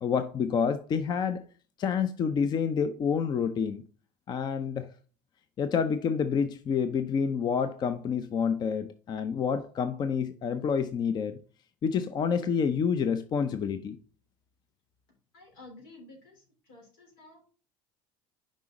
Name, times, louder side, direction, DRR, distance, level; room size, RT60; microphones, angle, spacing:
voice 1, 0.0-1.4 1.8-3.8 4.3-4.9 5.6-11.4 11.8-14.0, left 6 dB, 40° left, 0.6 m, -28 dB
voice 2, 15.3-17.4, left 2 dB, 90° left, 3.6 m, -52 dB
5.5 x 5.1 x 3.7 m
supercardioid pair, 95°, 11 cm